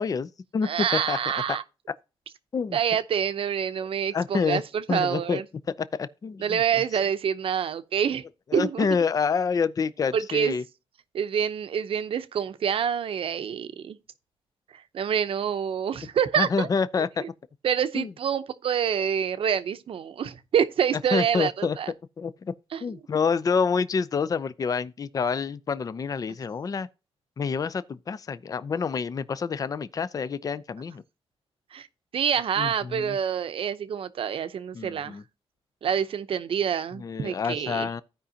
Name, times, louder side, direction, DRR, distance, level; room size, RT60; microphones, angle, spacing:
voice 1, 0.0-1.2 2.5-2.8 4.1-4.6 4.9-5.4 5.9-6.6 8.5-10.6 16.4-17.2 17.9-18.1 21.1-21.8 22.2-22.5 22.8-26.9 27.4-31.0 32.6-33.2 34.7-35.2 37.0-38.0, left 5 dB, 35° left, 0.5 m, -27 dB
voice 2, 0.6-1.6 2.7-5.4 6.4-8.2 8.5-8.9 10.1-10.6 11.1-14.0 14.7-16.7 17.0-17.3 17.6-21.9 22.7-22.8 31.7-31.9 32.1-35.2 35.8-37.9, right 8 dB, 65° right, 0.7 m, -27 dB
15.0 x 5.1 x 2.8 m
cardioid pair, 105°, 10 cm